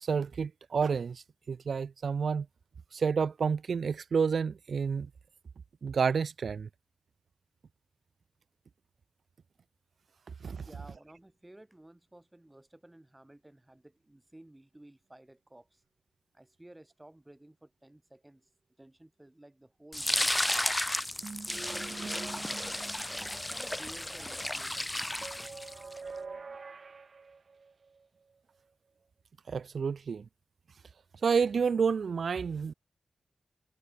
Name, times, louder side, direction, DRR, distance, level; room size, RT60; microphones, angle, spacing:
voice 1, 0.0-2.5 2.9-5.1 5.8-6.7 10.4-10.7 29.5-30.3 31.2-32.7, right 6 dB, 85° right, 0.3 m, -29 dB
voice 2, 10.6-15.8 16.3-18.5 18.8-20.8 21.5-22.9 23.3-25.5, right 1 dB, 20° right, 4.4 m, -55 dB
sound 1, 19.9-26.0, left 1 dB, 15° left, 0.6 m, -33 dB
sound 2, 21.2-24.3 25.2-28.1, right 4 dB, 65° right, 1.3 m, -45 dB
cardioid pair, 60°, 0 cm